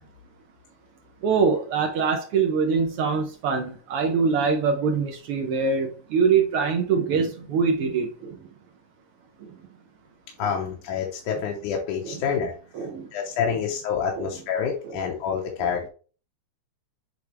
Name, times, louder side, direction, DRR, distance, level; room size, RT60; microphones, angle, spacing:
voice 1, 1.2-8.4 11.3-11.4 12.0-12.2 12.7-13.1 13.5-13.6 14.1-14.3 14.8-15.0 15.6-15.7, right 5 dB, 80° right, 1.2 m, -24 dB
voice 2, 10.4-12.5 13.1-15.9, left 7 dB, 85° left, 2.4 m, -27 dB
8.3 x 3.5 x 3.3 m
omnidirectional pair, 3.5 m